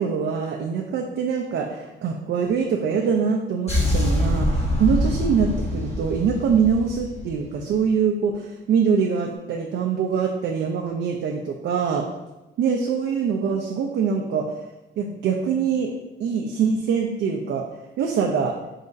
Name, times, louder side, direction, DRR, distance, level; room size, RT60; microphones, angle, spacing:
voice 1, 0.0-12.1 12.6-14.5 15.0-15.9 16.2-17.6 18.0-18.5, right 6 dB, 65° right, 1 dB, 0.5 m, -23 dB
sound 1, 3.7-7.8, left 1 dB, 30° left, 1.4 m, -24 dB
4.1 x 3.9 x 2.6 m, 1.0 s
cardioid pair, 90°, 20 cm